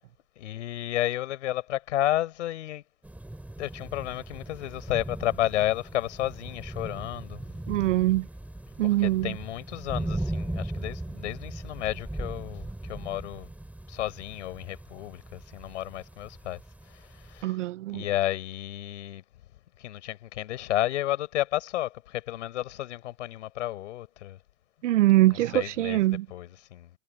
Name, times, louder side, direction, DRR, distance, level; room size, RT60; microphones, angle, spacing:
voice 1, 0.4-2.8 3.6-7.4 8.8-13.5 13.9-16.6 17.2-17.6 17.9-19.2 19.8-24.4 25.3-26.9, left 14 dB, 85° left, 5.4 m, -32 dB
sound 1, 3.0-17.4, right 1 dB, 5° right, 4.1 m, -38 dB
voice 2, 7.7-8.3 8.8-9.4 17.4-18.0 24.8-26.3, right 16 dB, 85° right, 1.0 m, -23 dB
supercardioid pair, 120°, 35 cm